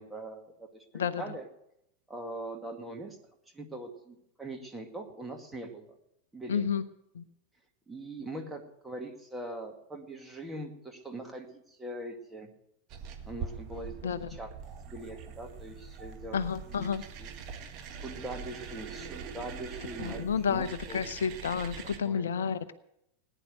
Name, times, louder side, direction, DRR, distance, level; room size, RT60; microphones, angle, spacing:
voice 1, 0.0-1.4 2.1-3.2 3.5-6.0 6.3-6.6 7.9-12.5 13.3-14.1 14.4-14.5 14.9-16.4 16.7-16.9 17.2-17.3 18.0-21.0 22.0-22.3, right 2 dB, 10° right, 3 dB, 2.1 m, -42 dB
voice 2, 6.5-6.8 7.1-7.2 14.0-14.3 16.3-17.0 20.0-22.6, left 7 dB, 65° left, 15 dB, 0.6 m, -30 dB
sound 1, 12.9-22.0, right 6 dB, 35° right, 1.8 m, -43 dB
18.5 x 10.0 x 6.5 m, 0.81 s
figure-of-eight pair, 90°, 0 cm